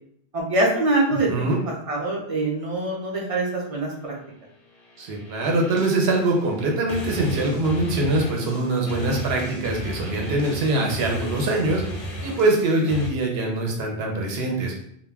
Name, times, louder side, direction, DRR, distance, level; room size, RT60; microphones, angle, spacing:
voice 1, 0.3-4.1, right 2 dB, 40° right, -2 dB, 0.6 m, -24 dB
voice 2, 1.3-1.6 5.0-11.8 12.2-14.7, right 2 dB, 75° right, 0 dB, 0.9 m, -23 dB
sound 1, 4.7-13.1, equal, 40° left, 0.5 m, -35 dB
2.2 x 2.1 x 3.3 m, 0.70 s
omnidirectional pair, 1.1 m